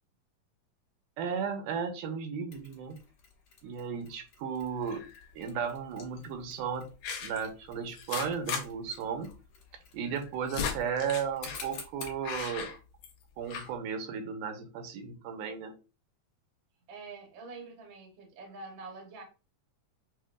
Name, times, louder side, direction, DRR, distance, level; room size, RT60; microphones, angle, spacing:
voice 1, 1.2-3.0 3.6-5.0 5.3-6.9 7.2-9.3 9.9-12.7 13.4-15.7, right 6 dB, 85° right, 7 dB, 2.2 m, -35 dB
Mechanisms, 2.5-12.3, left 4 dB, 55° left, 2.1 m, -52 dB
sound 1, 4.8-5.3 6.0-6.2 7.0-7.5 7.9-8.6 8.9-9.0 9.3-9.4 10.1-11.7 12.2-13.2 13.5-13.7, left 7 dB, 70° left, 1.8 m, -37 dB
voice 2, 16.9-19.2, right 3 dB, 70° right, 1 dB, 1.1 m, -46 dB
6.3 x 2.2 x 2.4 m, 0.31 s
omnidirectional pair, 3.8 m